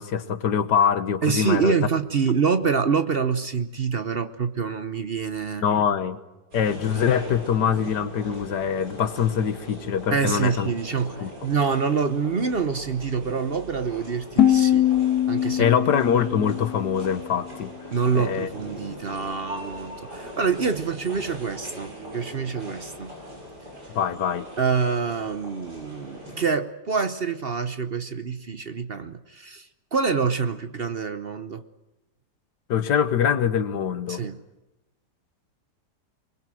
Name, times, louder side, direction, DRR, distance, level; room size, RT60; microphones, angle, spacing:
voice 1, 0.0-1.8 5.6-6.2 6.5-10.7 11.2-11.3 15.6-17.7 18.2-18.5 23.9-24.5 32.7-34.2, left 8 dB, 90° left, 12 dB, 1.8 m, -23 dB
voice 2, 1.2-5.6 10.1-14.9 15.3-15.7 17.9-23.1 24.6-31.6 34.1-34.4, right 5 dB, 45° right, 10 dB, 0.9 m, -26 dB
sound 1, 6.5-26.4, equal, 75° right, 8.1 m, -41 dB
sound 2, 14.4-17.4, left 11 dB, 75° left, 1.9 m, -22 dB
24.0 x 21.5 x 7.7 m, 1.0 s
omnidirectional pair, 1.8 m